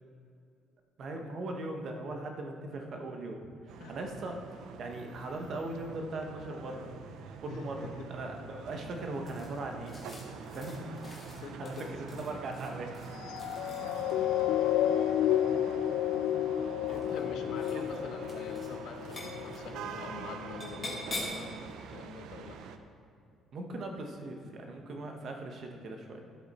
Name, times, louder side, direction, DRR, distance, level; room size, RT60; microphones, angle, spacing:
voice 1, 1.0-3.4 3.6-4.4 4.8-6.9 7.4-10.0 10.5-11.0 11.6-12.9 16.5-17.3 17.7-18.0 23.5-26.2, right 2 dB, 40° right, 3 dB, 1.1 m, -39 dB
sound 1, 3.7-22.8, right 6 dB, 65° right, 0.6 m, -45 dB
voice 2, 7.5-8.1 11.4-11.9 13.7-14.7 15.3-15.4 16.9-21.6 21.9-22.6, left 5 dB, 60° left, 5 dB, 0.9 m, -45 dB
sound 2, 9.3-14.3 15.5-16.1 16.8-17.3 17.5-18.0 18.2-18.7 19.0-19.6 20.6-21.5, left 2 dB, 20° left, 2.0 m, -44 dB
sound 3, 13.2-19.9 20.5-20.6, left 11 dB, 80° left, 0.3 m, -31 dB
12.5 x 7.8 x 4.2 m, 2.5 s
cardioid pair, 175°, 0 cm